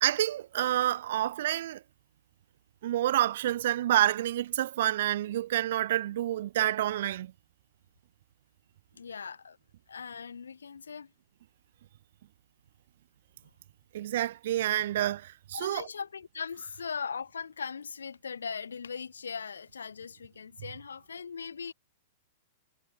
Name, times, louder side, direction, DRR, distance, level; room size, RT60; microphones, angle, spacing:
voice 1, 0.0-1.8 2.8-7.3 13.9-15.9, right 13 dB, 65° right, 0.3 m, -28 dB
voice 2, 9.0-9.6 9.9-11.1 15.5-21.7, left 6 dB, 85° left, 0.5 m, -39 dB
hypercardioid pair, 115°, 0 cm